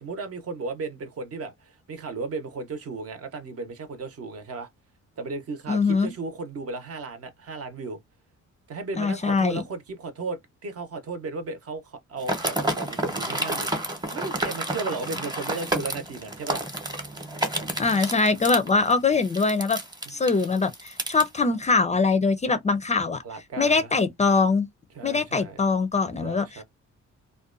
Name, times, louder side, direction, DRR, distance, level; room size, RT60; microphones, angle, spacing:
voice 1, 0.0-4.7 5.2-8.0 8.7-16.6 20.0-20.1 23.2-23.9 24.9-25.6 26.2-26.6, right 3 dB, 50° right, 0.8 m, -35 dB
voice 2, 5.7-6.1 9.0-9.6 17.5-19.8 20.1-23.2 23.6-24.7 25.0-26.6, left 4 dB, 25° left, 0.4 m, -23 dB
sound 1, 12.2-21.2, right 1 dB, 15° right, 0.9 m, -30 dB
2.5 x 2.2 x 2.4 m
cardioid pair, 90°, 30 cm